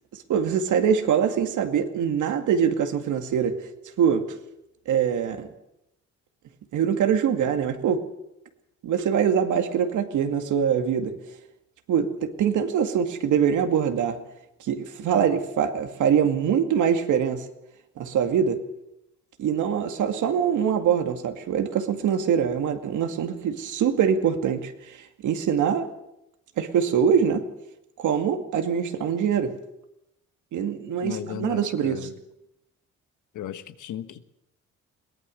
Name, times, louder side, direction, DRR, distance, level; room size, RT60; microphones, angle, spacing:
voice 1, 0.1-3.7 4.0-4.2 4.9-5.5 6.7-8.0 8.8-11.1 11.9-14.2 14.6-17.4 18.0-18.6 19.4-25.9 26.6-27.4 28.0-29.5 30.5-32.1, right 8 dB, 75° right, 2.2 m, -23 dB
voice 2, 31.0-32.2 33.3-34.3, left 10 dB, 80° left, 1.3 m, -36 dB
22.5 x 18.0 x 6.5 m
cardioid pair, 90°, 30 cm